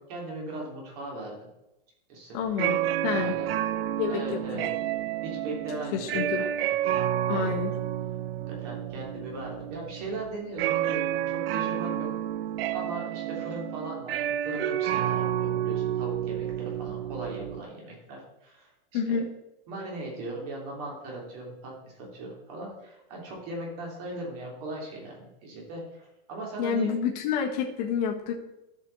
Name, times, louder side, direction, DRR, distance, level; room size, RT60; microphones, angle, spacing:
voice 1, 0.1-1.5 2.1-2.4 3.1-3.5 4.1-4.7 5.2-6.7 7.3-7.5 8.5-12.1 12.7-18.7 19.1-19.2 19.7-27.0, right 2 dB, 40° right, -2 dB, 3.1 m, -38 dB
voice 2, 2.3-3.3 4.0-4.2 4.5-4.7 5.9-6.4 7.3-7.7 18.9-19.2 26.6-28.3, left 7 dB, 40° left, 0 dB, 1.5 m, -28 dB
sound 1, 2.5-17.6, right 11 dB, 80° right, 0.5 m, -30 dB
13.0 x 5.6 x 4.0 m, 0.91 s
supercardioid pair, 170°, 29 cm